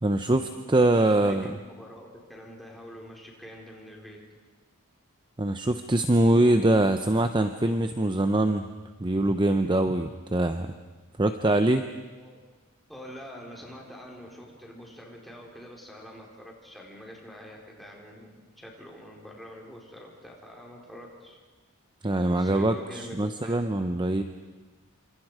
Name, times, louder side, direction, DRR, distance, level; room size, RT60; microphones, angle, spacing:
voice 1, 0.0-1.5 5.4-8.6 9.0-10.7 11.2-11.8 22.0-24.2, right 1 dB, 20° right, 8 dB, 0.7 m, -23 dB
voice 2, 0.8-4.2 12.1-12.4 12.9-21.4 22.4-23.6, equal, ahead, -2 dB, 4.4 m, -45 dB
28.0 x 26.5 x 5.0 m, 1.3 s
head